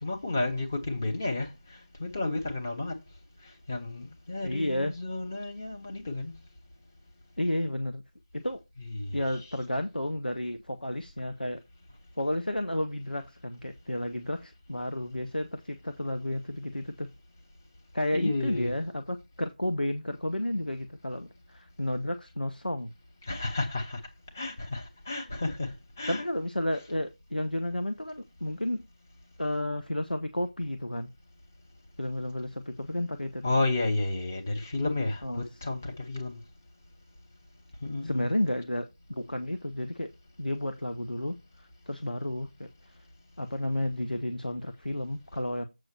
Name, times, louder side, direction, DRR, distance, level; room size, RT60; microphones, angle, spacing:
voice 1, 0.0-3.0 3.4-6.3 8.8-9.4 18.1-18.7 23.2-24.0 24.3-26.2 33.4-36.4 37.8-38.3, left 2 dB, 15° left, 1.0 m, -32 dB
voice 2, 4.4-4.9 7.4-8.0 8.3-8.6 9.1-11.6 12.2-17.1 17.9-22.9 26.1-28.9 29.4-31.1 32.0-33.5 35.2-35.7 38.0-40.1 40.4-42.7 43.4-45.6, left 1 dB, 85° left, 1.2 m, -32 dB
8.0 x 6.1 x 4.4 m
figure-of-eight pair, 170°, 5 cm